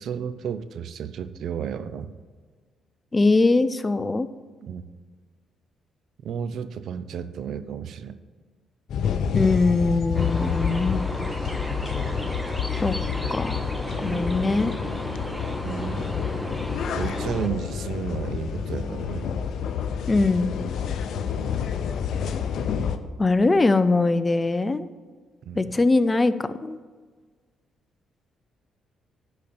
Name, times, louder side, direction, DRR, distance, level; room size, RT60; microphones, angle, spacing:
voice 1, 0.0-2.1 4.6-4.8 6.2-8.2 14.1-14.3 15.6-16.1 16.9-19.3 25.5-25.7, right 7 dB, 70° right, 12 dB, 0.5 m, -32 dB
voice 2, 3.1-4.3 9.3-11.1 12.8-13.0 13.3-13.6 14.0-14.7 20.1-20.5 23.2-24.9 25.6-26.8, left 3 dB, 25° left, 13 dB, 0.5 m, -21 dB
sound 1, 8.9-23.0, left 7 dB, 70° left, 0.6 m, -29 dB
sound 2, 10.1-17.5, equal, ahead, 0.8 m, -34 dB
10.5 x 4.2 x 6.8 m, 1.5 s
cardioid pair, 90°, 0 cm